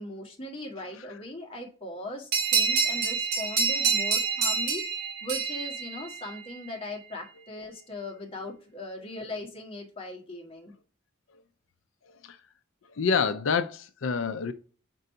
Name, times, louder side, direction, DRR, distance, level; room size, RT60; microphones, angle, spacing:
voice 1, 0.0-10.7, left 1 dB, 30° left, 1.5 m, -39 dB
sound 1, 2.3-6.6, right 5 dB, 55° right, 1.8 m, -27 dB
voice 2, 12.9-14.5, left 5 dB, 85° left, 0.5 m, -27 dB
4.6 x 3.9 x 5.4 m
head